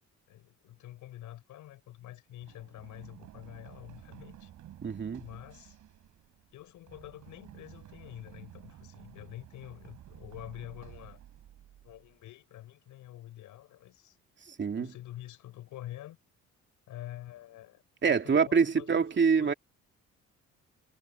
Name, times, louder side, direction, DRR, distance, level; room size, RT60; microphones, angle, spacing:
voice 1, 0.3-4.5 5.2-5.8 6.5-11.2 11.8-14.2 14.8-16.2 16.9-19.0 19.4-19.6, left 14 dB, 85° left, 5.9 m, -47 dB
Run, 2.4-12.1, right 11 dB, 75° right, 5.2 m, -52 dB
voice 2, 4.8-5.2 14.6-14.9 18.0-19.5, right 5 dB, 40° right, 2.7 m, -25 dB
cardioid pair, 90°, 30 cm